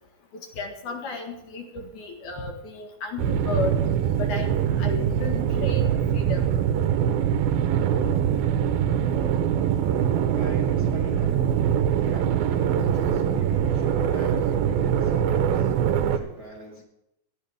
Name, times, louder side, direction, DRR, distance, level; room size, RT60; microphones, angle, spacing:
voice 1, 0.6-3.8 4.2-6.5, left 4 dB, 60° left, 3 dB, 2.8 m, -33 dB
sound 1, 3.2-16.2, right 9 dB, 80° right, 2.8 m, -23 dB
voice 2, 9.7-11.6 11.9-16.8, right 2 dB, 35° right, -3 dB, 1.9 m, -42 dB
19.0 x 12.5 x 3.5 m, 0.86 s
omnidirectional pair, 4.4 m